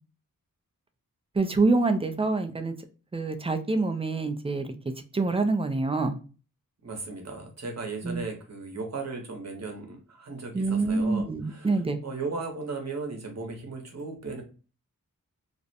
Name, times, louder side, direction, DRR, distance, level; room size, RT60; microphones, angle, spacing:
voice 1, 1.4-2.7 3.1-4.7 5.1-6.2 8.0-8.3 10.5-12.0, right 3 dB, 20° right, 7 dB, 0.3 m, -26 dB
voice 2, 6.8-14.4, right 3 dB, 50° right, 3 dB, 0.8 m, -36 dB
2.4 x 2.0 x 2.6 m, 0.36 s
wide cardioid pair, 65°, 34 cm